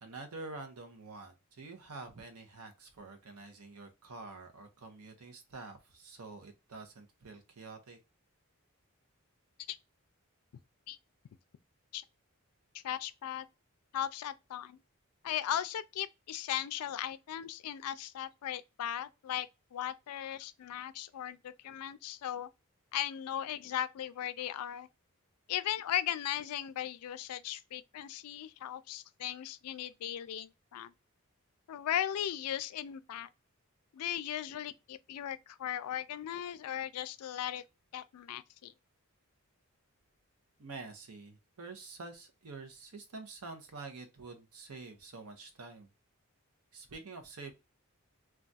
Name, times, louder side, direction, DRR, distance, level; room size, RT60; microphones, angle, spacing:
voice 1, 0.0-8.0 40.6-45.9 46.7-47.5, right 3 dB, 85° right, 0.8 m, -47 dB
voice 2, 12.7-13.5 13.9-14.8 15.2-22.5 22.9-24.9 25.5-30.9 31.7-33.3 33.9-37.6 37.9-38.7, left 11 dB, 85° left, 0.3 m, -37 dB
2.4 x 2.3 x 3.9 m
head